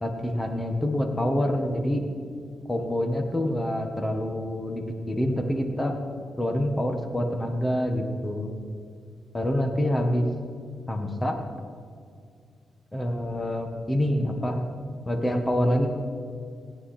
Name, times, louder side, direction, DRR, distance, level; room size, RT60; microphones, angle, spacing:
voice 1, 0.0-2.0 2.7-5.9 6.4-8.5 9.3-10.3 10.9-11.3 12.9-14.6 15.0-15.9, equal, 15° left, 4 dB, 1.4 m, -26 dB
17.5 x 9.6 x 4.4 m, 2.3 s
cardioid pair, 105°, 0 cm